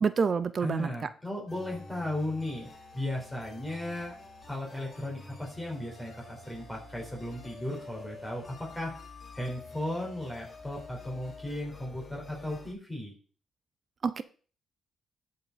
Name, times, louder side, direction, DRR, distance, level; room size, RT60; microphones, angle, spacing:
voice 1, 0.0-0.9 14.0-14.2, right 5 dB, 40° right, 14 dB, 0.5 m, -27 dB
voice 2, 0.6-2.7 2.9-4.1 4.5-8.9 9.3-13.1, left 1 dB, 5° left, -3 dB, 4.6 m, -36 dB
sound 1, 1.5-12.7, left 3 dB, 25° left, 4.3 m, -48 dB
12.5 x 5.7 x 4.2 m, 0.41 s
cardioid pair, 90°, 0 cm